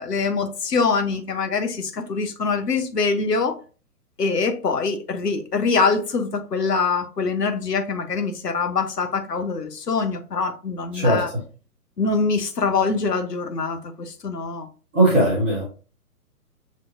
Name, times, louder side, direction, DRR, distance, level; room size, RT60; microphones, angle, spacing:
voice 1, 0.0-3.5 4.2-11.3 12.0-14.7, left 4 dB, 85° left, 0.9 m, -24 dB
voice 2, 14.9-15.6, right 1 dB, 10° right, 0.4 m, -18 dB
6.2 x 2.9 x 2.6 m
figure-of-eight pair, 125°, 47 cm